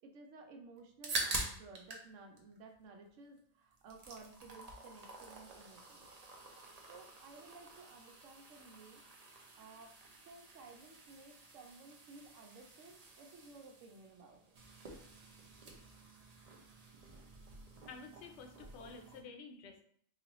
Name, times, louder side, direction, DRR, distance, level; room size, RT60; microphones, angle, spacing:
voice 1, 0.0-6.1 6.9-9.0 9.6-9.9 10.2-14.6, right 3 dB, 75° right, 3 dB, 1.0 m, -56 dB
sound 1, 0.8-2.1 2.4-3.4 3.7-19.2, right 2 dB, 50° right, 0.5 m, -47 dB
voice 2, 17.9-19.8, left 4 dB, 65° left, 4 dB, 0.8 m, -51 dB
4.0 x 2.4 x 2.9 m, 0.62 s
omnidirectional pair, 1.4 m